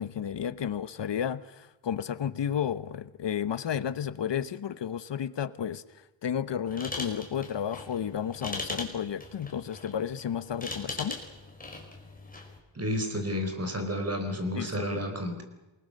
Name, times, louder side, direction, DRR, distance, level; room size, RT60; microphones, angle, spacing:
voice 1, 0.0-5.8 6.2-11.2 14.5-15.1, left 8 dB, 60° left, 15 dB, 1.2 m, -32 dB
sound 1, 6.7-12.6, left 2 dB, 15° left, 4.8 m, -40 dB
voice 2, 12.7-15.4, equal, 30° right, 6 dB, 4.6 m, -31 dB
28.0 x 20.5 x 6.6 m, 1.1 s
wide cardioid pair, 140°, 47 cm